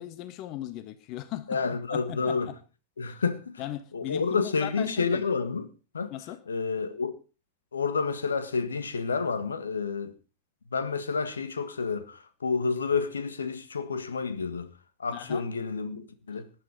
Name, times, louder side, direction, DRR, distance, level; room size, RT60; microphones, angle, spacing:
voice 1, 0.0-1.6 1.9-2.6 3.0-3.2 3.6-5.2 6.1-6.4 15.1-15.5, left 13 dB, 40° left, 1.4 m, -38 dB
voice 2, 1.5-2.5 3.0-3.6 3.9-6.1 6.5-7.1 7.7-10.2 10.7-14.7 15.0-16.5, left 5 dB, 70° left, 1.7 m, -29 dB
19.0 x 11.0 x 5.1 m
figure-of-eight pair, 90°, 0 cm